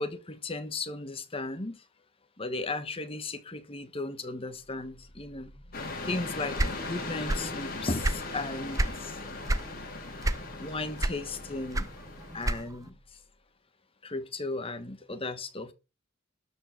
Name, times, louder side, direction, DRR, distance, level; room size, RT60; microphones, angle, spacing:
voice 1, 0.0-1.8 2.4-5.5 6.1-9.2 10.6-11.9 12.3-12.9 14.0-15.7, left 2 dB, 25° left, 1.3 m, -35 dB
sound 1, 4.5-13.4, left 1 dB, 65° left, 2.0 m, -51 dB
sound 2, 5.7-12.6, left 3 dB, 45° left, 3.3 m, -39 dB
sound 3, 6.5-7.6 7.9-9.0 9.5-9.7 10.2-10.7 11.0-12.9, right 1 dB, 15° right, 0.6 m, -28 dB
12.0 x 4.9 x 7.5 m
head